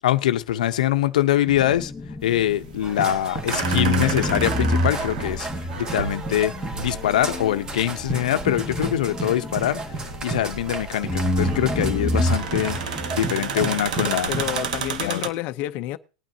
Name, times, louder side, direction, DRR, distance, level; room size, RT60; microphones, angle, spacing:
voice 1, 0.0-1.9 2.2-5.5 5.8-9.8 10.2-12.8 13.1-14.3 15.0-15.2, left 12 dB, 85° left, 0.8 m, -23 dB
sound 1, 1.5-3.2 3.6-10.7 11.1-15.1, left 1 dB, 5° left, 0.9 m, -28 dB
sound 2, 2.2-15.3, right 7 dB, 80° right, 1.4 m, -32 dB
sound 3, 2.8-14.6, right 3 dB, 20° right, 1.4 m, -32 dB
voice 2, 14.3-16.0, left 16 dB, 45° left, 0.6 m, -29 dB
19.5 x 9.1 x 2.7 m
supercardioid pair, 145°, 4 cm